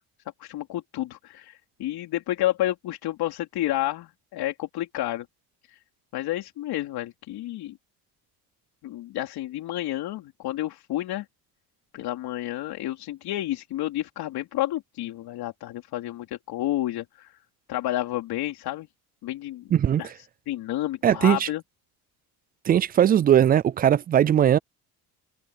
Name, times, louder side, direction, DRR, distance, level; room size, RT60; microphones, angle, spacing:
voice 1, 0.4-5.3 6.1-7.7 8.8-11.3 11.9-17.3 17.7-18.9 19.2-19.6 20.0-20.1 20.5-21.6, left 14 dB, 65° left, 3.8 m, -30 dB
voice 2, 19.7-20.0 21.0-21.5 22.7-24.6, right 10 dB, 25° right, 0.3 m, -19 dB
cardioid pair, 125°, 39 cm